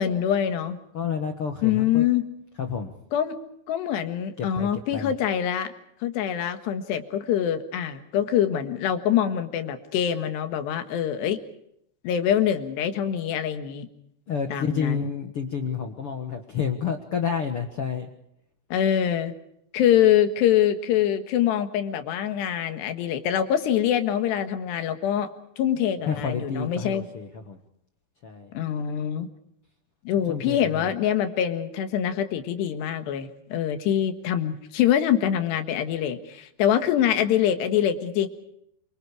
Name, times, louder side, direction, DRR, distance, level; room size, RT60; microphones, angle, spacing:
voice 1, 0.0-0.8 1.6-2.2 3.1-3.4 3.7-5.7 6.0-11.4 12.0-13.9 14.5-15.1 18.7-19.3 19.7-27.1 28.6-29.3 30.1-38.3, left 10 dB, 90° left, 8 dB, 3.7 m, -24 dB
voice 2, 0.9-2.0 2.6-2.9 4.4-5.1 14.3-18.1 26.1-27.6 28.2-28.5 30.3-30.8, left 6 dB, 65° left, 5 dB, 1.4 m, -29 dB
27.5 x 24.5 x 4.9 m, 0.75 s
omnidirectional pair, 4.8 m